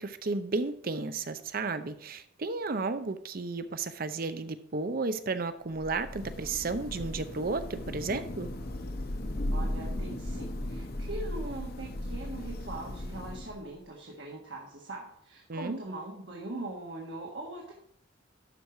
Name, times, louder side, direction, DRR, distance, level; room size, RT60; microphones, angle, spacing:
voice 1, 0.0-8.5 15.5-15.8, right 3 dB, 50° right, 11 dB, 0.7 m, -33 dB
Thunder / Rain, 5.7-13.8, left 1 dB, 55° left, 0.9 m, -36 dB
voice 2, 9.5-17.7, right 2 dB, 65° right, -2 dB, 1.5 m, -41 dB
12.0 x 4.7 x 4.7 m, 0.66 s
head